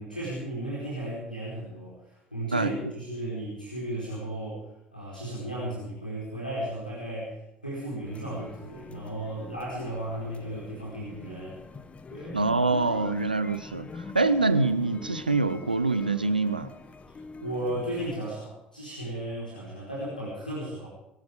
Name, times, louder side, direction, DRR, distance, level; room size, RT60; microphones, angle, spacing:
voice 1, 0.0-4.6 4.9-11.6 12.1-12.5 17.4-20.9, right 1 dB, 90° left, -7 dB, 4.6 m, -35 dB
sound 1, 8.0-18.2, left 3 dB, 25° left, 1.4 m, -44 dB
voice 2, 12.3-16.7, right 3 dB, 85° right, 12 dB, 0.8 m, -25 dB
22.5 x 12.0 x 5.1 m, 0.88 s
figure-of-eight pair, 60°, 5 cm